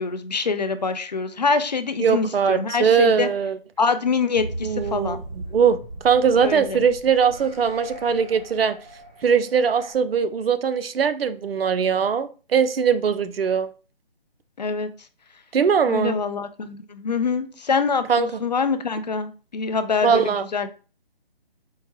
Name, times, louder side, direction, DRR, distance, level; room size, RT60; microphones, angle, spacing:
voice 1, 0.0-3.3 3.8-5.2 6.4-6.8 14.6-14.9 15.9-20.7, left 5 dB, 45° left, 0.4 m, -25 dB
voice 2, 2.0-3.6 4.6-5.2 5.5-8.8 9.2-13.7 15.5-16.2 18.1-18.4 20.0-20.4, right 6 dB, 75° right, 0.5 m, -21 dB
sound 1, 4.3-9.9, right 1 dB, 40° right, 0.9 m, -38 dB
4.4 x 2.2 x 3.1 m
hypercardioid pair, 160°, 30 cm